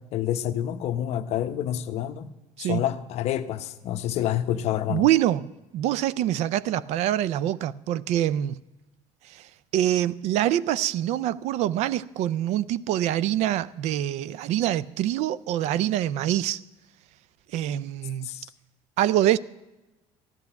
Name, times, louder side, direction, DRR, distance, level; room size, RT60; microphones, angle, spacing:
voice 1, 0.1-2.3 2.6-5.1 18.2-18.5, left 11 dB, 55° left, 0.8 m, -28 dB
voice 2, 4.9-5.5 5.7-8.6 9.3-16.6 17.5-18.3 19.0-19.4, right 12 dB, 60° right, 0.4 m, -25 dB
14.5 x 11.0 x 5.7 m
cardioid pair, 140°, 13 cm